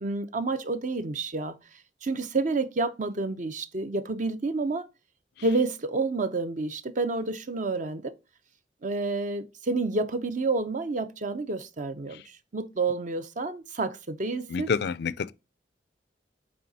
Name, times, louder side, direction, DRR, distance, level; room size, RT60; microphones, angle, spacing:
voice 1, 0.0-1.5 2.0-4.9 5.4-8.1 8.8-14.7, right 3 dB, 45° right, 0.7 m, -29 dB
voice 2, 14.5-15.3, left 5 dB, 65° left, 0.4 m, -28 dB
8.8 x 3.6 x 4.0 m
head